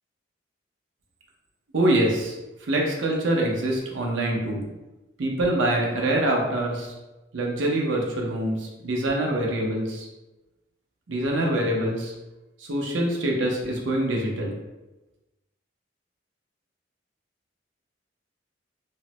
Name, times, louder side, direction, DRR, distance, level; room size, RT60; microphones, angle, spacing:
voice 1, 1.7-2.3 2.6-4.7 5.2-6.9 7.3-10.1 11.1-12.1 12.6-14.6, right 1 dB, 90° right, -1 dB, 0.6 m, -25 dB
3.1 x 2.0 x 2.9 m, 1.1 s
head